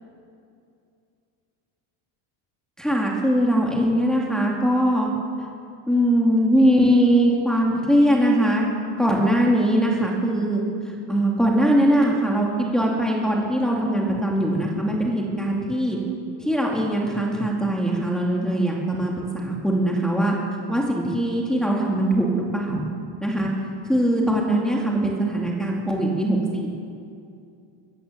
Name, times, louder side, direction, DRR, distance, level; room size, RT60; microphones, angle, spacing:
voice 1, 2.8-5.1 5.9-8.7 9.0-16.0 16.4-20.3 20.7-22.8 23.2-23.5 23.8-26.7, right 1 dB, ahead, -3 dB, 2.5 m, -21 dB
22.0 x 16.5 x 7.5 m, 2.5 s
cardioid pair, 160°, 46 cm